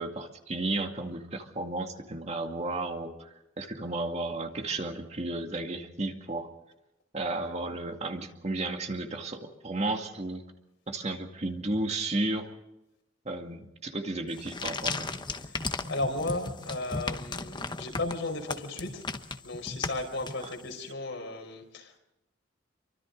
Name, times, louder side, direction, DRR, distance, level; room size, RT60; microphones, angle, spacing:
voice 1, 0.0-3.3 3.6-6.5 7.1-10.4 10.9-12.5 13.3-15.1 20.4-20.5, right 2 dB, 35° right, 4 dB, 2.2 m, -33 dB
sound 1, 14.3-20.8, left 3 dB, 25° left, 1.0 m, -36 dB
voice 2, 15.9-19.0 19.4-22.0, left 2 dB, 80° left, 3 dB, 4.8 m, -35 dB
28.0 x 24.5 x 4.0 m, 0.92 s
head